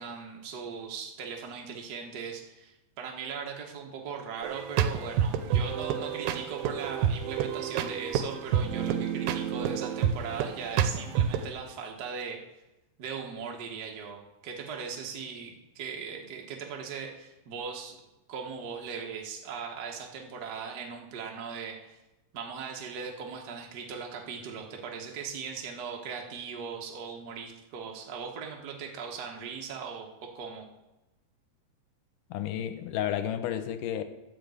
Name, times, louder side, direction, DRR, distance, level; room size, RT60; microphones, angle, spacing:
voice 1, 0.0-12.4 13.0-22.0 22.3-30.1 30.3-30.7, right 6 dB, 70° right, 0.9 m, -39 dB
sound 1, 4.4-11.4, right 8 dB, 90° right, 2.4 m, -29 dB
voice 2, 32.3-34.0, left 10 dB, 80° left, 2.2 m, -31 dB
11.5 x 5.2 x 7.8 m
omnidirectional pair, 3.9 m